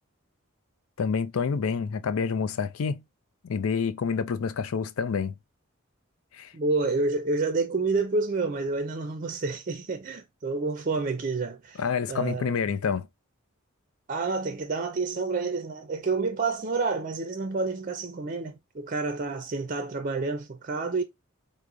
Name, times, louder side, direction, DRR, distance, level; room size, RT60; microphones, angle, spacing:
voice 1, 1.0-3.0 3.4-5.3 6.3-6.5 11.8-13.1, left 6 dB, 90° left, 0.4 m, -28 dB
voice 2, 6.5-12.7 14.1-21.0, right 3 dB, 40° right, 0.4 m, -29 dB
4.6 x 2.0 x 2.4 m
head